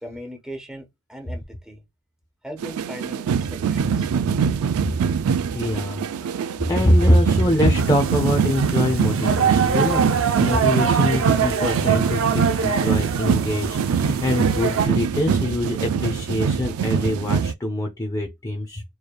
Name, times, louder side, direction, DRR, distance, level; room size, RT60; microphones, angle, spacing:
voice 1, 0.0-1.8 2.4-4.1, equal, 5° right, 1.1 m, -38 dB
sound 1, 2.6-17.5, right 7 dB, 90° right, 0.4 m, -23 dB
voice 2, 5.5-6.4 6.7-18.8, left 1 dB, 15° left, 0.6 m, -23 dB
sound 2, 7.8-14.9, right 6 dB, 65° right, 0.7 m, -25 dB
4.7 x 3.2 x 2.3 m
head